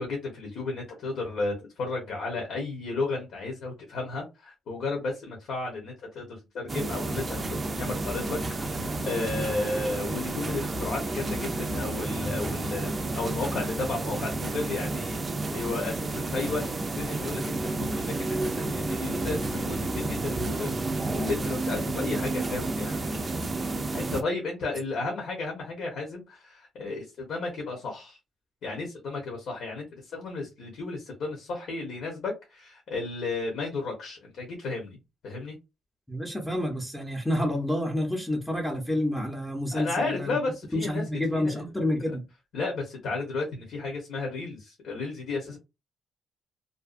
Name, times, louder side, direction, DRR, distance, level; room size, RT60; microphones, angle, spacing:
voice 1, 0.0-15.2 15.5-23.0 23.9-28.2 28.6-35.0 35.2-35.6 39.7-41.0 41.3-41.5 42.5-45.6, left 3 dB, 70° left, 1.0 m, -33 dB
sound 1, 6.7-24.2, right 2 dB, 30° right, 0.4 m, -31 dB
voice 2, 36.1-40.4 40.7-42.2, left 1 dB, 5° left, 0.7 m, -29 dB
2.6 x 2.3 x 2.4 m
cardioid pair, 90°, 0 cm